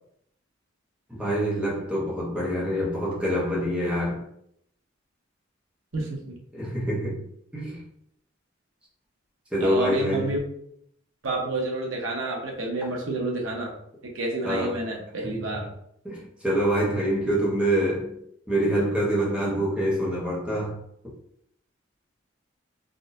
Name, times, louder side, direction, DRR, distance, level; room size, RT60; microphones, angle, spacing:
voice 1, 1.1-4.3 6.5-7.2 7.5-7.9 9.5-10.3 14.4-14.7 16.0-18.1 18.5-20.8, equal, 5° right, 0.9 m, -25 dB
voice 2, 5.9-6.3 9.6-10.4 11.2-13.7 14.0-15.7, right 2 dB, 90° right, 0.9 m, -29 dB
3.9 x 2.6 x 2.6 m
head